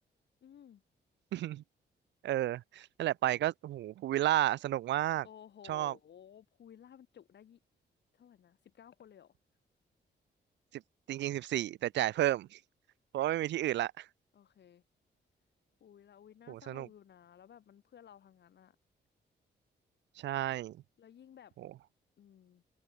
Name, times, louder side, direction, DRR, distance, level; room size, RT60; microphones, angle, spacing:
voice 1, 0.4-0.8 5.2-7.6 8.1-9.3 14.3-14.8 15.8-18.8 21.0-21.6 22.2-22.6, left 9 dB, 70° left, 5.4 m, -56 dB
voice 2, 1.3-1.6 2.2-5.3 5.7-5.9 11.1-12.6 13.1-14.1 16.5-16.9 20.2-20.8, right 14 dB, 75° right, 0.4 m, -32 dB
open air
cardioid pair, 105°, 18 cm